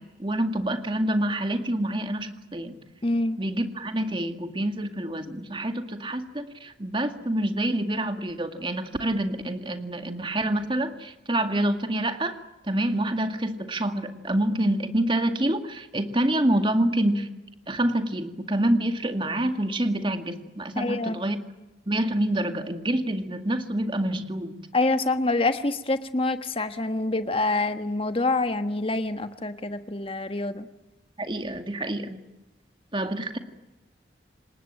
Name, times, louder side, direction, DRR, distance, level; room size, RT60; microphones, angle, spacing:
voice 1, 0.0-2.8 3.4-12.3 12.7-17.3 17.7-21.4 21.9-24.6 31.2-32.2 32.9-33.4, right 1 dB, 25° right, 7 dB, 2.0 m, -27 dB
voice 2, 3.0-3.4 20.8-21.2 24.7-30.7, left 2 dB, 30° left, 9 dB, 1.4 m, -26 dB
27.5 x 19.5 x 9.0 m, 1.0 s
head